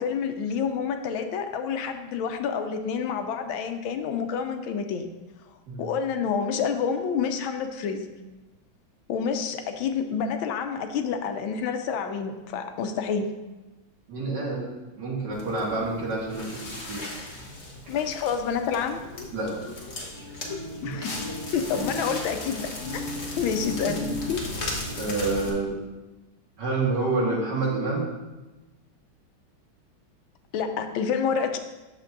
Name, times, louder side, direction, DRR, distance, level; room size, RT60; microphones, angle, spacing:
voice 1, 0.0-5.1 5.8-8.1 9.1-13.3 17.9-19.0 20.8-21.2 21.5-23.0 23.4-24.4 30.5-31.6, left 6 dB, 90° left, 7 dB, 1.5 m, -28 dB
voice 2, 14.1-17.0 19.3-19.6 20.8-21.0 23.9-24.0 24.9-25.8 26.6-28.1, right 3 dB, 60° right, -4 dB, 2.2 m, -28 dB
Crackle, 15.3-25.5, left 1 dB, 40° left, 1.2 m, -36 dB
9.3 x 6.5 x 2.6 m, 1.1 s
omnidirectional pair, 2.2 m